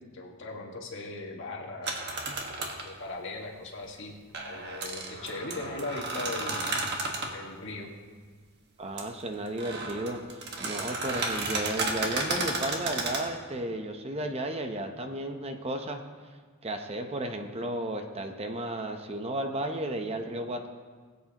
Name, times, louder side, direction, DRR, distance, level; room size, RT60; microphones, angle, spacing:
voice 1, 0.1-2.0 2.8-4.1 4.4-6.7 7.3-7.9, left 2 dB, 60° left, 0 dB, 1.7 m, -38 dB
sound 1, 1.8-2.9 4.3-7.3 9.0-9.1 9.5-13.3, right 2 dB, 50° right, 1.5 m, -33 dB
voice 2, 8.8-16.3 16.6-20.7, right 1 dB, 30° right, 5 dB, 0.7 m, -34 dB
20.5 x 8.2 x 2.9 m, 1.5 s
head